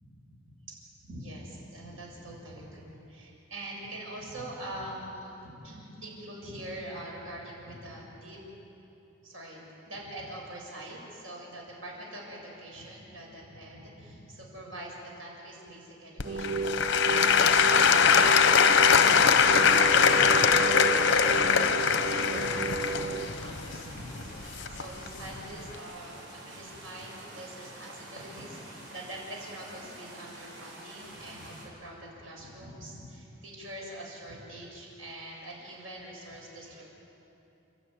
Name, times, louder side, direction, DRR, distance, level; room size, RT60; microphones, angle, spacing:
voice 1, 1.0-8.4 9.2-36.8, right 1 dB, 80° right, -2 dB, 7.1 m, -44 dB
Applause / Crowd, 16.2-25.1 25.7-25.8, left 6 dB, 60° left, 0.9 m, -22 dB
sound 1, 16.2-23.3, right 4 dB, 35° right, 0.8 m, -33 dB
sound 2, 17.6-31.7, right 1 dB, 65° right, 7.4 m, -47 dB
30.0 x 12.0 x 9.7 m, 2.9 s
head